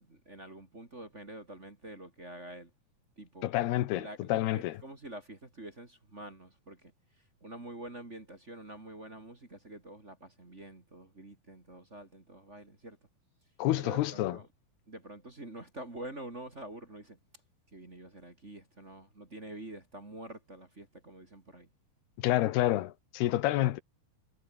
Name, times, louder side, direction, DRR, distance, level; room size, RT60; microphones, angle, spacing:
voice 1, 0.0-2.7 3.2-3.5 3.9-6.9 7.4-13.0 13.8-14.5 14.9-17.2 17.7-21.7, right 1 dB, 20° right, 2.6 m, -47 dB
voice 2, 3.4-4.8 13.6-14.4 22.2-23.8, left 15 dB, 90° left, 3.2 m, -28 dB
omnidirectional pair, 4.4 m